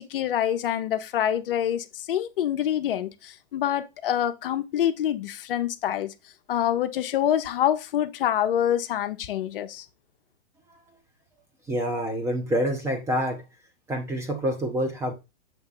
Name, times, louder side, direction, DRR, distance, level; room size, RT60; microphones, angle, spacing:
voice 1, 0.0-6.1 6.5-9.8, left 10 dB, 55° left, 0.7 m, -26 dB
voice 2, 11.7-13.4 13.9-15.1, equal, 10° right, 0.7 m, -27 dB
7.2 x 2.9 x 5.4 m
hypercardioid pair, 150°, 33 cm